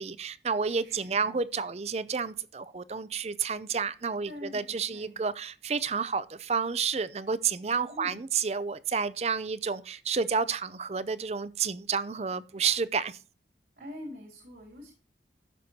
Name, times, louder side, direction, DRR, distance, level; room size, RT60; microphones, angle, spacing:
voice 1, 0.0-13.2, right 5 dB, 35° right, 0.5 m, -30 dB
voice 2, 0.8-1.4 4.2-5.2 7.9-8.2 13.8-14.9, left 1 dB, 65° right, 3.4 m, -45 dB
13.5 x 6.1 x 2.8 m
head